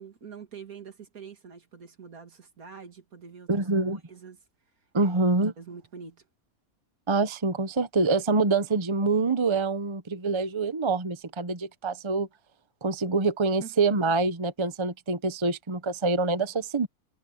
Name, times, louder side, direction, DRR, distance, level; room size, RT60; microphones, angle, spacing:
voice 1, 0.0-4.4 5.0-5.2 5.6-6.3 13.6-13.8, right 6 dB, 70° right, 2.8 m, -45 dB
voice 2, 3.5-4.0 4.9-5.5 7.1-12.3 12.8-16.9, right 3 dB, 25° right, 0.9 m, -25 dB
omnidirectional pair, 1.6 m